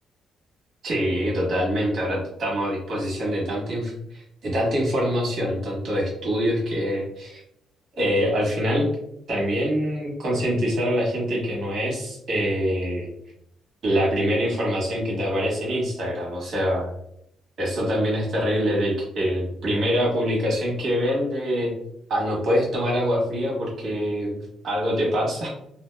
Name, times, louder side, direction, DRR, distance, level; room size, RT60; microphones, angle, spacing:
voice 1, 0.8-7.4 8.0-8.9 9.3-13.1 13.8-16.9 17.6-21.7 22.1-25.5, equal, 60° right, -3 dB, 1.3 m, -24 dB
2.7 x 2.3 x 2.2 m, 0.75 s
cardioid pair, 90°, 0 cm